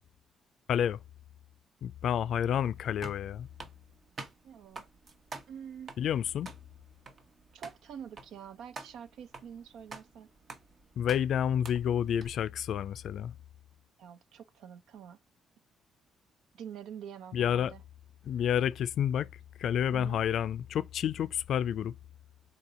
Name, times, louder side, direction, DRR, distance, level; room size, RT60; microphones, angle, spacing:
voice 1, 0.7-1.0 1.8-3.5 6.0-6.5 11.0-13.3 17.3-17.7 18.3-19.3 19.6-21.9, left 9 dB, 70° left, 0.4 m, -29 dB
sound 1, 2.6-12.3, right 3 dB, 45° right, 1.0 m, -49 dB
voice 2, 4.4-4.8 5.5-6.0 7.5-10.3 14.0-15.2 16.5-17.8 19.9-20.2, right 8 dB, 80° right, 0.6 m, -46 dB
4.1 x 2.8 x 3.7 m
cardioid pair, 90°, 0 cm